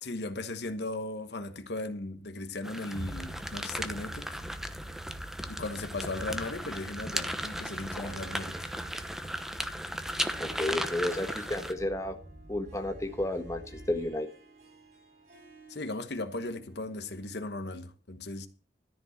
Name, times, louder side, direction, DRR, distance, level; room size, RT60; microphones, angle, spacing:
voice 1, 0.0-4.4 5.5-8.7 15.7-18.5, left 2 dB, 70° left, 1.2 m, -37 dB
sound 1, 2.6-11.7, equal, ahead, 0.9 m, -36 dB
sound 2, 2.9-14.1, right 1 dB, 30° right, 1.9 m, -45 dB
Harp, 7.2-17.5, right 4 dB, 45° right, 7.7 m, -55 dB
voice 2, 10.4-12.2 12.5-13.6 13.9-14.3, left 1 dB, 15° left, 1.5 m, -32 dB
13.5 x 5.3 x 7.9 m
head